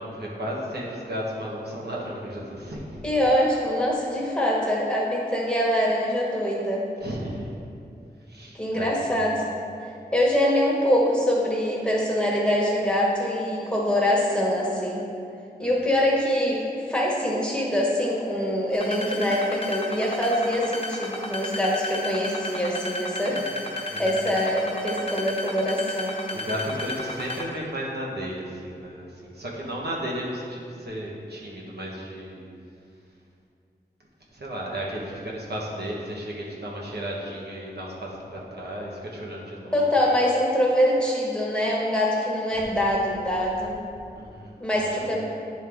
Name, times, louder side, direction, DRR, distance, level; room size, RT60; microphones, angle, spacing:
voice 1, 0.0-2.8 7.0-7.5 8.3-9.5 21.6-21.7 23.3-24.1 26.3-32.5 34.3-39.9 44.1-45.2, equal, 70° right, -3 dB, 1.2 m, -34 dB
voice 2, 3.0-6.8 8.5-9.4 10.1-15.1 15.6-23.4 24.0-26.2 39.7-43.7 44.6-45.2, equal, 5° left, -4 dB, 1.3 m, -24 dB
sound 1, 18.7-27.4, left 2 dB, 35° left, 1.0 m, -33 dB
9.4 x 4.6 x 3.6 m, 2.5 s
wide cardioid pair, 75°, 17 cm